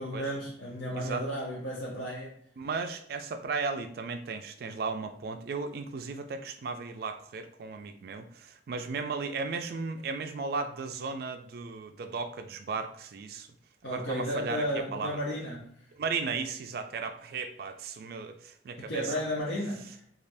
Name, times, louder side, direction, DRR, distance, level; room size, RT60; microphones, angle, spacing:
voice 1, 0.0-2.3 13.8-15.7 18.8-20.0, equal, 75° left, -5 dB, 0.7 m, -33 dB
voice 2, 0.9-1.2 2.6-13.5 13.9-14.6 14.9-15.2 16.0-19.1, right 4 dB, 55° right, 7 dB, 0.3 m, -35 dB
3.3 x 2.4 x 2.6 m, 0.65 s
head